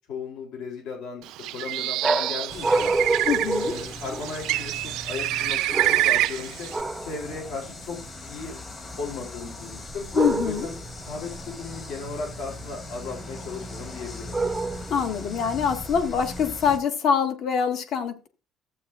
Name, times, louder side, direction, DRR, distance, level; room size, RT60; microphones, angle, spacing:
voice 1, 0.1-2.9 3.6-6.7 7.0-8.6 9.0-10.1 10.4-10.7 11.1-14.4, left 4 dB, 65° left, 0 dB, 3.2 m, -36 dB
Bird, 1.3-6.8, right 16 dB, 65° right, 0.5 m, -27 dB
sound 1, 2.0-4.5 5.7-6.3 6.7-7.2 10.1-10.8 14.3-15.1, right 3 dB, 5° right, 0.7 m, -27 dB
sound 2, 2.5-16.8, left 1 dB, 25° left, 1.6 m, -40 dB
voice 2, 3.3-3.7 10.1-10.7 14.9-18.3, left 7 dB, 45° left, 7 dB, 1.4 m, -24 dB
14.5 x 8.6 x 2.4 m, 0.31 s
cardioid pair, 180°, 0 cm